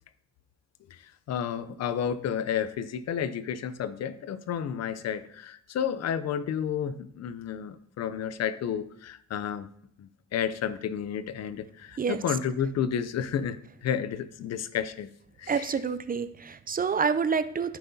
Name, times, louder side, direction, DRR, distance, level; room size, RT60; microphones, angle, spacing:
voice 1, 1.3-9.7 10.0-15.1 15.4-15.7, left 8 dB, 60° left, 14 dB, 0.6 m, -31 dB
voice 2, 15.5-17.8, right 6 dB, 30° right, 12 dB, 0.5 m, -28 dB
13.0 x 5.7 x 2.7 m, 0.70 s
cardioid pair, 90°, 30 cm